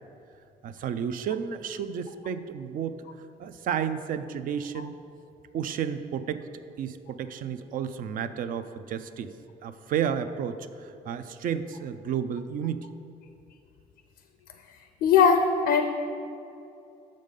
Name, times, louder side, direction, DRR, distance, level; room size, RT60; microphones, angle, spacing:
voice 1, 0.6-4.9 5.5-6.5 6.8-9.3 9.6-12.9, right 8 dB, 55° right, 11 dB, 0.4 m, -32 dB
voice 2, 15.0-15.8, left 6 dB, 75° left, 7 dB, 0.5 m, -20 dB
6.5 x 5.2 x 5.3 m, 2.6 s
cardioid pair, 110°, 17 cm